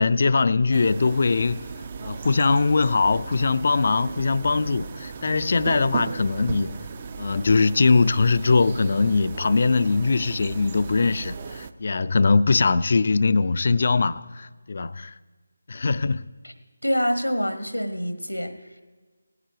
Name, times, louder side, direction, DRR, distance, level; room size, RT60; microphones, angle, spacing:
voice 1, 0.0-1.7 2.0-6.8 7.2-15.1 15.7-16.2, left 4 dB, 40° left, 0.4 m, -21 dB
sound 1, 0.7-11.7, right 5 dB, 25° right, 0.4 m, -36 dB
voice 2, 16.8-18.5, equal, 90° left, 1.1 m, -26 dB
17.5 x 9.5 x 4.9 m
figure-of-eight pair, 160°, 0 cm